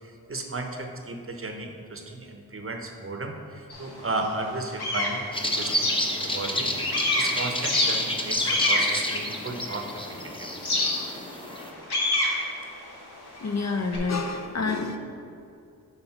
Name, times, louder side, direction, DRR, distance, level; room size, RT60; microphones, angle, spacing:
voice 1, 0.0-6.7 7.1-9.9 10.2-10.5, right 2 dB, 35° right, 4 dB, 0.8 m, -34 dB
sound 1, 3.7-3.8 4.3-6.6 6.9-10.0 10.6-14.0, left 2 dB, 75° left, 1.3 m, -27 dB
sound 2, 5.3-11.7, left 1 dB, 15° left, 0.8 m, -30 dB
voice 2, 13.4-15.0, left 4 dB, 45° left, 5 dB, 0.6 m, -28 dB
5.7 x 3.9 x 5.7 m, 2.6 s
cardioid pair, 50°, 39 cm